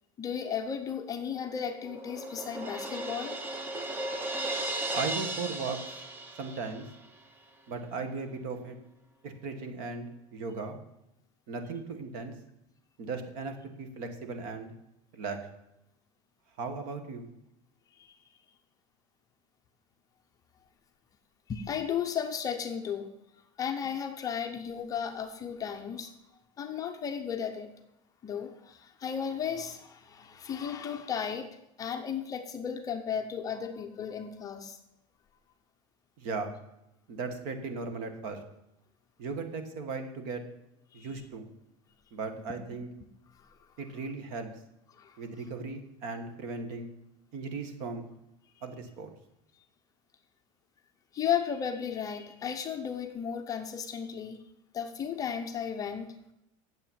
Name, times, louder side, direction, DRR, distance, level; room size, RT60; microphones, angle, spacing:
voice 1, 0.2-3.4 4.3-4.9 21.5-23.1 23.6-26.1 26.6-27.7 28.2-34.8 40.9-41.1 43.4-43.5 45.0-45.2 51.1-54.4 54.7-56.1, left 7 dB, 20° left, 5 dB, 0.6 m, -35 dB
Crash cymbal, 1.3-7.0, right 2 dB, 10° right, 0.8 m, -36 dB
voice 2, 4.9-6.0 6.4-6.9 7.7-8.8 9.2-10.8 11.5-12.3 13.0-14.7 15.1-15.4 16.6-17.2 36.2-36.5 37.1-38.4 39.2-40.4 40.9-41.5 42.1-42.9 43.8-44.5 45.2-46.9 47.3-48.0 48.6-49.1, right 4 dB, 50° right, 7 dB, 1.6 m, -37 dB
8.9 x 7.8 x 7.4 m, 0.86 s
cardioid pair, 175°, 17 cm